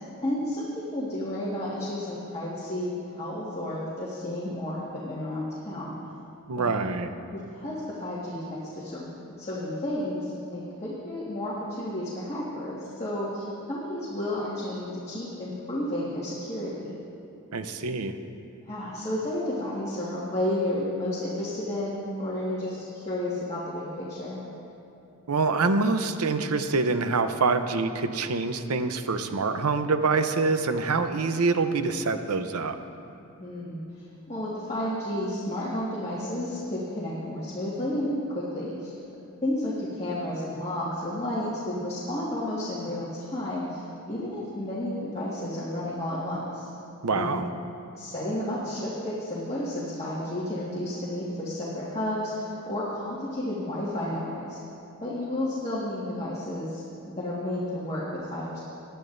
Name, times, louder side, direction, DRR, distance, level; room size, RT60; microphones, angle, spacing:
voice 1, 0.2-6.0 6.5-6.7 7.3-9.1 9.4-16.9 18.7-24.4 33.4-33.8 34.3-38.9 39.4-46.7 47.1-47.3 47.9-54.6 55.0-58.6, left 1 dB, 25° left, -8 dB, 1.7 m, -32 dB
voice 2, 6.5-7.1 17.5-18.2 25.3-32.8 47.0-47.5, right 4 dB, 80° right, 9 dB, 0.7 m, -25 dB
19.5 x 11.5 x 2.6 m, 2.7 s
head